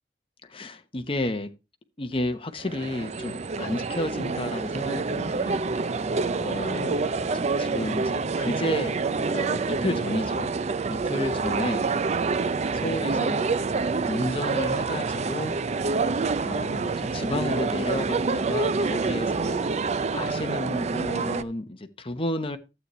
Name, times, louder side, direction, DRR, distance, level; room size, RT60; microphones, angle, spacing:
voice 1, 0.4-1.5 2.0-5.6 6.4-10.5 10.9-11.9 12.7-15.6 16.4-19.9 20.1-22.6, left 1 dB, 30° left, 0.9 m, -32 dB
sound 1, 2.6-21.4, right 4 dB, 40° right, 0.5 m, -27 dB
12.0 x 8.2 x 3.1 m
head